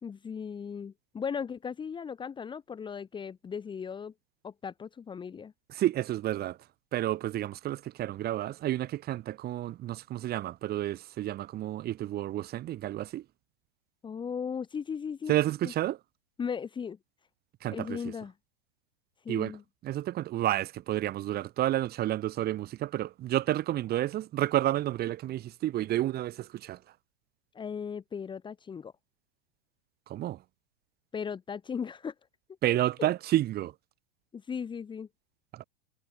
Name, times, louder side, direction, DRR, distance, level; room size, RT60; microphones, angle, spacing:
voice 1, 0.0-4.1 4.4-5.5 14.0-15.4 15.6-15.7 16.4-17.0 17.7-18.3 19.2-19.6 27.5-28.9 31.1-32.1 32.7-33.1 34.3-35.1, left 6 dB, 15° left, 2.2 m, -37 dB
voice 2, 5.7-6.6 6.9-13.2 15.3-16.0 17.6-18.1 19.3-19.5 19.8-26.8 30.1-30.4 32.6-33.7 35.5-35.6, right 14 dB, 30° right, 6.6 m, -30 dB
hypercardioid pair, 135°, 31 cm